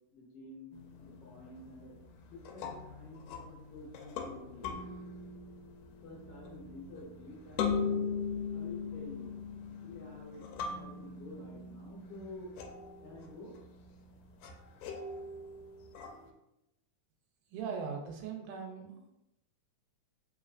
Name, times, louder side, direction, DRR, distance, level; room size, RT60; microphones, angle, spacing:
voice 1, 0.1-1.9 2.3-4.9 6.0-8.1 8.5-9.4 9.8-12.5 13.0-13.6, left 2 dB, 60° left, -6 dB, 1.8 m, -49 dB
sound 1, 0.7-16.3, left 5 dB, 85° left, 2.0 m, -40 dB
voice 2, 17.5-19.1, right 6 dB, 85° right, 2 dB, 2.2 m, -40 dB
4.5 x 3.1 x 2.4 m, 0.90 s
omnidirectional pair, 3.6 m